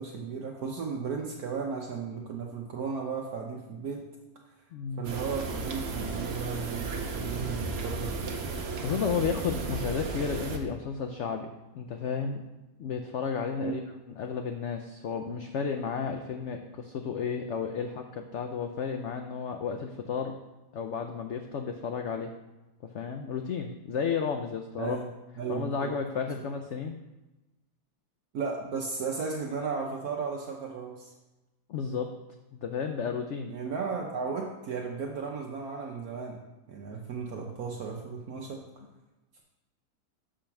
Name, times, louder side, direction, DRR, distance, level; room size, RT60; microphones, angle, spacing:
voice 1, 0.0-4.0 5.0-8.1 13.6-13.9 24.8-25.1 25.4-25.9 28.3-31.1 33.5-36.4 36.7-38.6, right 5 dB, 65° right, 0 dB, 1.2 m, -35 dB
voice 2, 4.7-5.1 8.8-12.4 12.8-13.8 14.1-20.3 20.7-22.3 22.8-25.0 25.5-27.0 31.7-32.1 32.5-33.5, left 6 dB, 75° left, 5 dB, 0.6 m, -32 dB
sound 1, 5.0-10.6, right 3 dB, 50° right, 0.9 m, -34 dB
6.8 x 5.0 x 5.9 m, 1.0 s
omnidirectional pair, 1.8 m